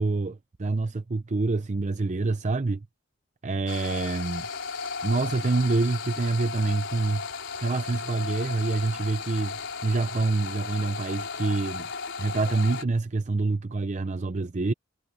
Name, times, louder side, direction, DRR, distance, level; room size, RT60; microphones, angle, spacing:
voice 1, 0.0-2.8 3.4-4.5 5.0-7.2 7.6-11.9 12.2-14.7, right 3 dB, 35° right, 0.6 m, -26 dB
sound 1, 3.7-12.8, left 5 dB, 65° left, 4.1 m, -35 dB
head